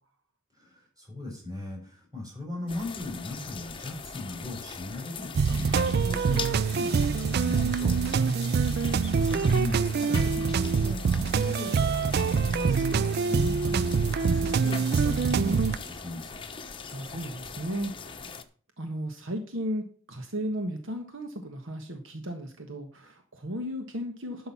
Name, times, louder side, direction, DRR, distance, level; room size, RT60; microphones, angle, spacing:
voice 1, 0.6-8.0 9.2-16.4, left 2 dB, 15° right, -1 dB, 6.4 m, -38 dB
sound 1, 2.7-18.4, left 5 dB, 25° left, 1.0 m, -41 dB
sound 2, 5.4-15.8, right 5 dB, 50° right, 0.4 m, -25 dB
voice 2, 8.2-8.6 16.9-18.3 18.8-24.5, equal, 65° right, 5 dB, 1.4 m, -35 dB
11.5 x 6.3 x 5.9 m, 0.43 s
head